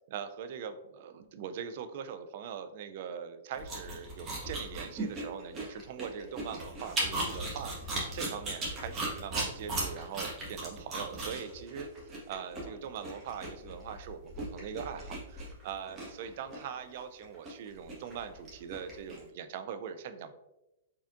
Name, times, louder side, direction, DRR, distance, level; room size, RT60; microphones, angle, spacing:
voice 1, 0.1-20.3, right 7 dB, 55° right, 9 dB, 0.4 m, -41 dB
sound 1, 3.5-19.2, right 2 dB, 25° right, 1.4 m, -37 dB
4.4 x 3.5 x 2.5 m, 0.94 s
hypercardioid pair, 125°, 0 cm